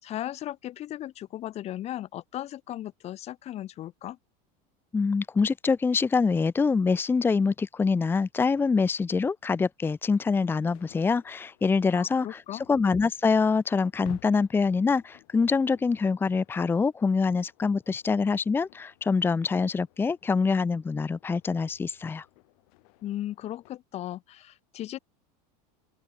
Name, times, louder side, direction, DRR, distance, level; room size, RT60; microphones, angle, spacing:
voice 1, 0.0-4.2 11.9-12.6 23.0-25.0, left 13 dB, 30° left, 3.2 m, -36 dB
voice 2, 4.9-12.4 12.7-22.2, left 4 dB, 10° left, 1.0 m, -25 dB
sound 1, 10.1-23.8, left 30 dB, 60° left, 6.3 m, -55 dB
open air
supercardioid pair, 160°, 20 cm